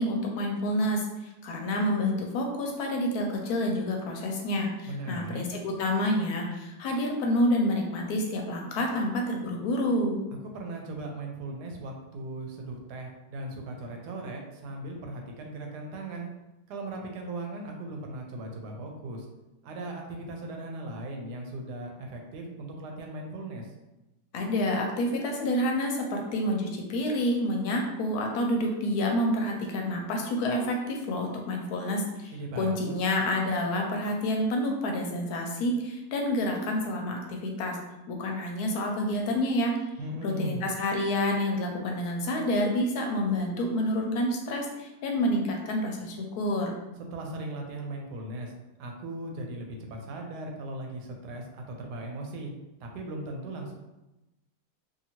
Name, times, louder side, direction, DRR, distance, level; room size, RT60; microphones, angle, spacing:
voice 1, 0.0-10.2 24.3-37.8 38.1-39.7 40.2-46.7, left 1 dB, 75° left, 1 dB, 1.0 m, -28 dB
voice 2, 4.9-5.5 10.4-16.3 16.7-19.3 19.6-23.7 32.3-33.0 40.0-40.7 47.1-48.5 48.8-52.5 52.8-53.7, right 1 dB, 85° right, 1 dB, 1.2 m, -38 dB
2.8 x 2.7 x 2.8 m, 0.98 s
omnidirectional pair, 1.7 m